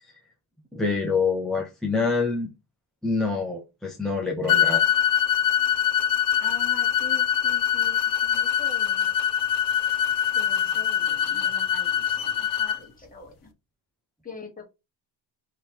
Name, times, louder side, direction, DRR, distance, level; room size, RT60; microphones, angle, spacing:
voice 1, 0.7-2.5 3.0-4.8, left 4 dB, ahead, 0.4 m, -26 dB
sound 1, 4.5-12.8, left 9 dB, 45° left, 0.6 m, -23 dB
voice 2, 6.4-9.1 10.3-13.5 14.2-14.6, left 3 dB, 15° left, 1.3 m, -44 dB
3.3 x 2.9 x 4.2 m
cardioid pair, 160°, 49 cm